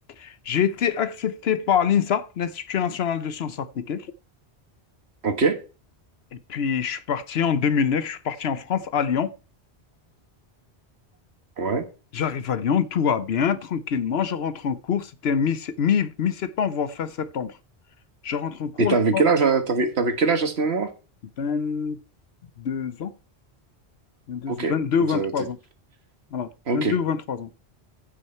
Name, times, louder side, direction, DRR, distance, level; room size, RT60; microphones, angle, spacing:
voice 1, 0.2-4.1 6.3-9.3 12.1-17.5 18.2-19.2 21.4-22.0 22.6-23.1 24.3-25.6 26.3-27.5, left 7 dB, 75° left, 1.0 m, -25 dB
voice 2, 5.2-5.6 11.6-11.9 18.8-20.9 24.5-24.7 25.1-25.3 26.7-27.0, right 4 dB, 75° right, 1.8 m, -22 dB
15.0 x 6.3 x 4.4 m
omnidirectional pair, 1.1 m